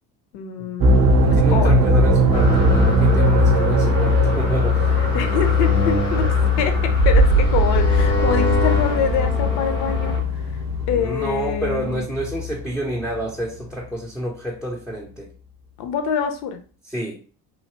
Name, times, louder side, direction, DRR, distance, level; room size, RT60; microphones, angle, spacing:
voice 1, 0.3-1.8 3.5-3.7 5.0-6.2 6.6-10.2 10.9-12.1 15.8-16.6, left 7 dB, 50° left, 7 dB, 0.7 m, -25 dB
sound 1, 0.8-13.2, left 1 dB, 45° right, 0.7 m, -19 dB
voice 2, 1.2-4.9 10.9-15.3 16.9-17.2, right 1 dB, ahead, -2 dB, 0.4 m, -29 dB
sound 2, 2.3-10.2, equal, 80° left, 1.4 m, -28 dB
3.2 x 2.6 x 2.8 m, 0.38 s
figure-of-eight pair, 55°, 50 cm